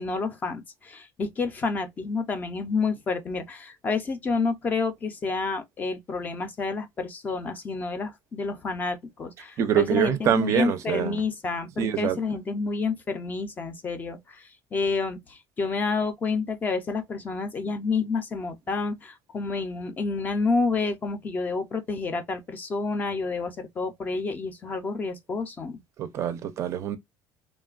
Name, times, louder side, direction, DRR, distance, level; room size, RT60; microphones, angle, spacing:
voice 1, 0.0-25.8, left 4 dB, 20° left, 0.4 m, -29 dB
voice 2, 9.6-11.2 11.8-12.2 26.0-27.0, right 9 dB, 35° right, 0.4 m, -25 dB
3.1 x 2.1 x 2.3 m
cardioid pair, 180°, 8 cm